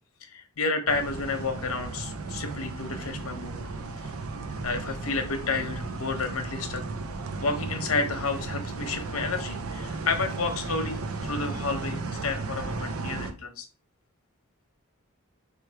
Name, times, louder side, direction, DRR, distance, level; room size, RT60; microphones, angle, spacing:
voice 1, 0.2-3.6 4.0-4.1 4.6-6.8 7.4-13.7, left 4 dB, 90° left, 6 dB, 0.9 m, -31 dB
sound 1, 0.9-13.3, right 3 dB, 85° right, 0.6 m, -35 dB
3.4 x 3.2 x 4.6 m, 0.35 s
head